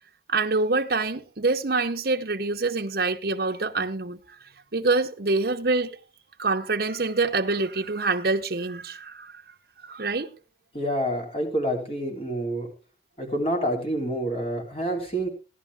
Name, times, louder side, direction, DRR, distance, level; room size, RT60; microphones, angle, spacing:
voice 1, 0.3-4.4 4.7-6.0 6.4-9.4 9.8-10.3, right 3 dB, 60° right, 0.9 m, -26 dB
voice 2, 10.7-12.7 13.2-15.3, right 1 dB, 35° left, 3.2 m, -27 dB
15.0 x 11.0 x 3.5 m
head